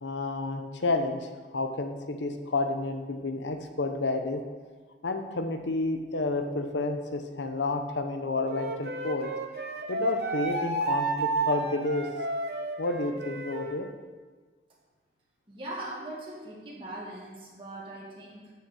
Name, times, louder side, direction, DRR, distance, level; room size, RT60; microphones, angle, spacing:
voice 1, 0.0-4.4 5.0-9.3 9.9-12.1 12.8-13.9, left 2 dB, 85° left, 6 dB, 0.9 m, -30 dB
Wind instrument woodwind instrument, 8.5-13.8, right 3 dB, 60° right, 1.0 m, -31 dB
voice 2, 15.5-18.5, right 1 dB, 30° right, -6 dB, 1.8 m, -40 dB
7.1 x 6.2 x 6.3 m, 1.4 s
head